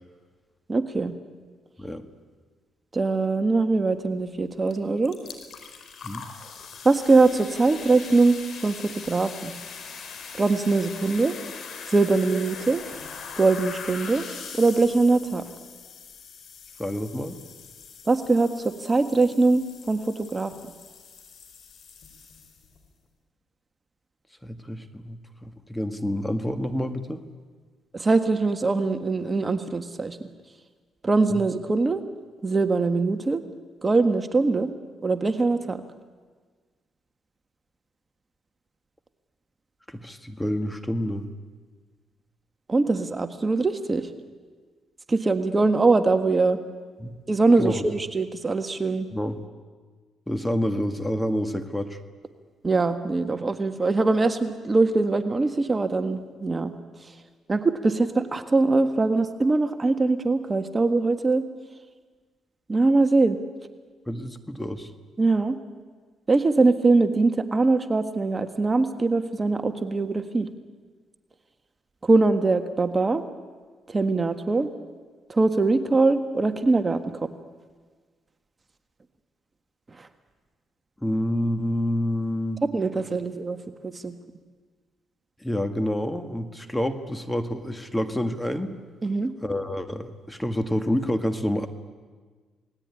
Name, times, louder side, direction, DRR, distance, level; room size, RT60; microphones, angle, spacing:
voice 1, 0.7-1.1 2.9-5.2 6.9-9.5 10.3-11.4 11.9-12.8 13.4-14.2 14.5-15.4 18.1-20.5 27.9-30.2 31.0-32.0 32.4-33.4 33.8-34.7 35.0-35.8 42.7-44.1 45.1-46.6 47.3-49.1 52.6-56.7 57.5-61.4 62.7-63.4 65.2-65.6 66.3-70.5 72.0-73.2 73.9-74.7 75.3-77.0 80.0-80.1 82.7-83.6 83.8-84.1 89.0-89.3, right 3 dB, 25° right, 7 dB, 1.6 m, -22 dB
sound 1, 4.7-4.8 5.0-22.8, left 6 dB, 65° left, 4.6 m, -41 dB
voice 2, 16.8-17.4 24.4-27.2 31.3-31.4 39.9-41.3 47.0-47.2 47.6-47.9 49.1-49.4 50.3-52.0 64.1-64.9 81.0-82.6 85.4-88.8 89.4-91.7, equal, 10° left, 8 dB, 1.9 m, -28 dB
28.0 x 19.5 x 9.9 m, 1.5 s
cardioid pair, 90°, 0 cm